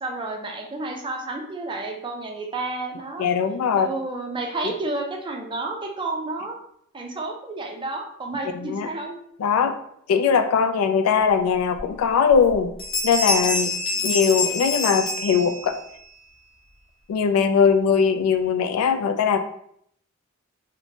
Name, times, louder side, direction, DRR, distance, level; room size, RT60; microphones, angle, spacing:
voice 1, 0.0-3.3 3.7-6.6 6.9-9.2 13.9-14.1, right 2 dB, 25° right, 2 dB, 0.4 m, -31 dB
voice 2, 3.2-3.9 8.5-8.9 9.4-9.8 10.1-12.7 13.0-13.7 14.0-15.8 17.1-19.4, left 6 dB, 80° left, 13 dB, 0.3 m, -20 dB
sound 1, 11.8-11.9 12.3-12.5 12.8-15.9, left 2 dB, 60° left, 0.8 m, -26 dB
2.8 x 2.1 x 2.6 m, 0.69 s
head